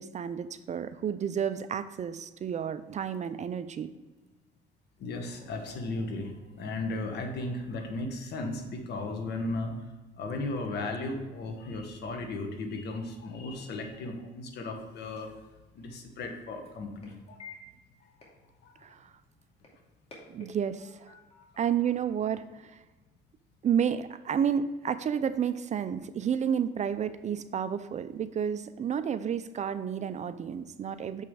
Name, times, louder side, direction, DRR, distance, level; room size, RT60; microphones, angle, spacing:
voice 1, 0.0-3.9 18.8-19.1 20.3-21.1 21.6-22.8 23.6-31.2, right 8 dB, 40° right, 12 dB, 0.5 m, -31 dB
voice 2, 5.0-9.8 10.2-15.3 15.7-17.4 18.0-18.1 18.6-18.7, left 2 dB, 65° left, 4 dB, 1.5 m, -36 dB
sound 1, 15.6-23.1, left 3 dB, 35° left, 2.4 m, -55 dB
7.0 x 5.5 x 4.8 m, 1.2 s
cardioid pair, 105°, 19 cm